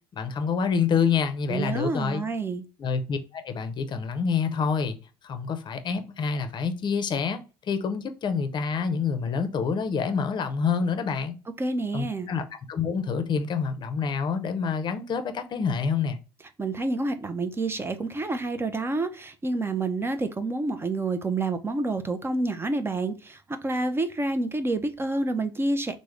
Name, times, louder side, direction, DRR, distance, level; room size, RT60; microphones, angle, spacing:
voice 1, 0.1-2.2 2.8-5.0 5.2-7.4 7.7-11.4 11.9-16.2, left 6 dB, 40° left, 0.6 m, -27 dB
voice 2, 1.5-2.6 11.6-12.3 16.6-26.0, right 2 dB, 20° right, 0.4 m, -28 dB
3.5 x 2.0 x 3.1 m
hypercardioid pair, 70°, 12 cm